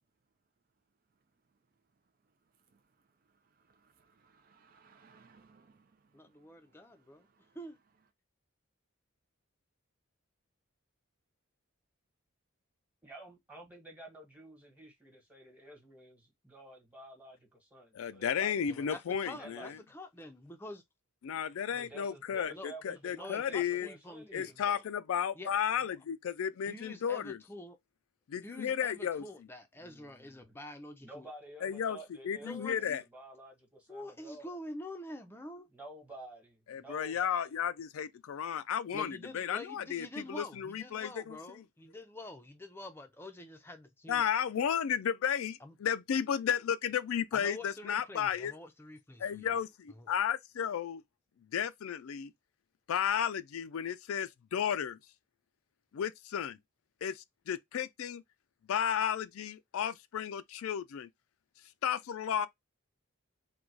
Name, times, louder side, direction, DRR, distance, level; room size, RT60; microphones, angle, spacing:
voice 1, 3.4-7.6, right 5 dB, 40° right, 0.4 m, -65 dB
voice 2, 6.1-7.3 7.5-7.8 18.7-20.8 22.5-24.5 25.3-25.5 26.7-27.8 28.4-31.3 32.4-33.0 33.9-35.7 38.9-44.2 45.6-45.7 47.3-49.5 49.9-50.1, left 1 dB, 10° left, 0.5 m, -47 dB
voice 3, 13.0-18.6 19.4-19.7 21.7-24.8 29.8-30.5 31.0-34.6 35.7-37.5, right 1 dB, 5° right, 1.3 m, -51 dB
voice 4, 17.9-19.7 21.2-23.9 24.3-27.4 28.3-29.2 31.6-32.0 32.2-33.0 36.7-41.4 44.1-48.5 49.2-51.0 51.5-52.3 52.9-55.0 55.9-56.6 57.0-58.2 58.7-61.1 61.8-62.5, left 8 dB, 80° left, 0.4 m, -33 dB
3.9 x 2.3 x 4.5 m
head